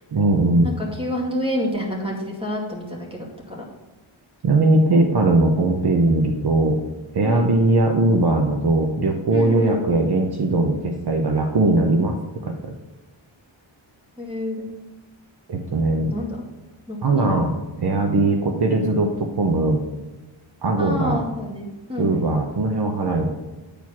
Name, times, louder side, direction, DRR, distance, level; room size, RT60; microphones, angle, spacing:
voice 1, 0.1-0.7 4.4-6.8 7.1-12.2 12.4-12.7 15.5-16.1 17.0-17.5 17.8-19.9 20.6-21.2 22.0-23.4, right 2 dB, 50° right, 2 dB, 0.9 m, -19 dB
voice 2, 0.6-3.6 7.2-7.5 9.3-9.8 14.2-14.7 16.1-16.4 16.9-17.4 20.8-22.3, left 1 dB, 10° right, -3 dB, 2.3 m, -28 dB
10.0 x 4.7 x 5.8 m, 1.1 s
wide cardioid pair, 155°, 50 cm